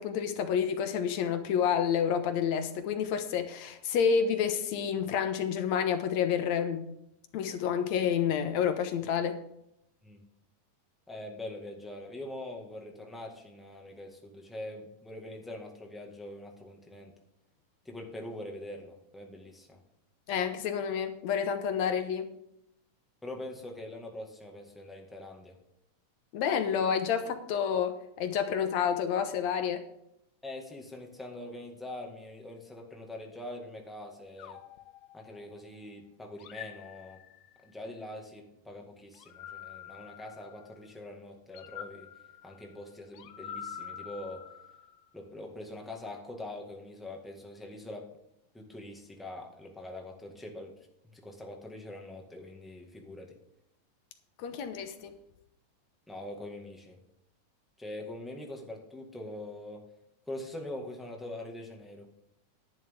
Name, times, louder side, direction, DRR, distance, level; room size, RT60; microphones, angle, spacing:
voice 1, 0.0-6.9 7.3-9.4 20.3-22.3 26.3-29.9 54.4-55.1, left 7 dB, 70° left, 2.1 m, -29 dB
voice 2, 11.1-17.1 17.8-19.8 23.2-25.5 30.4-34.6 35.1-37.2 37.6-42.1 42.4-44.4 45.1-48.1 48.5-50.7 51.1-53.3 56.1-57.0 57.8-59.8 60.3-62.1, left 1 dB, ahead, 1.0 m, -43 dB
sound 1, 34.4-35.8 36.4-37.7 39.1-40.9 41.5-45.1, left 9 dB, 85° left, 2.3 m, -46 dB
11.0 x 11.0 x 3.7 m
omnidirectional pair, 3.5 m